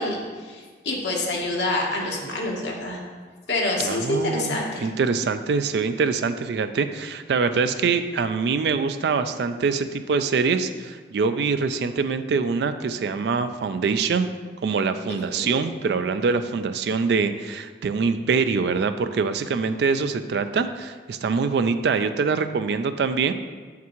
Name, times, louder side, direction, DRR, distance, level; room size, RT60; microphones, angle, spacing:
voice 1, 0.0-3.0 3.5-4.9 15.1-15.5, left 2 dB, 80° left, -2 dB, 1.2 m, -27 dB
voice 2, 3.8-14.3 14.6-23.3, right 5 dB, 70° right, 10 dB, 0.3 m, -24 dB
7.2 x 5.9 x 3.0 m, 1.5 s
head